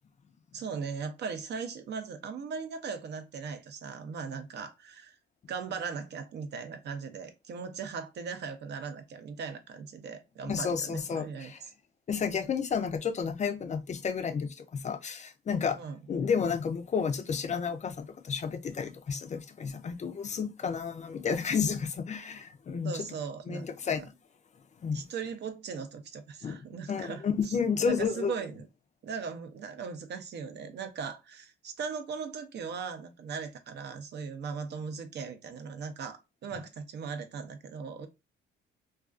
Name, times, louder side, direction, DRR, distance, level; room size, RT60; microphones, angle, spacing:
voice 1, 0.5-5.2 5.5-11.5 15.8-16.0 22.8-23.7 24.9-28.7 29.0-38.1, right 5 dB, 60° right, 0.5 m, -39 dB
voice 2, 10.4-11.6 12.1-15.8 16.1-23.0 23.5-24.1 24.8-25.1 26.4-28.3, left 6 dB, 35° left, 0.4 m, -31 dB
2.3 x 2.3 x 2.4 m
cardioid pair, 90°, 20 cm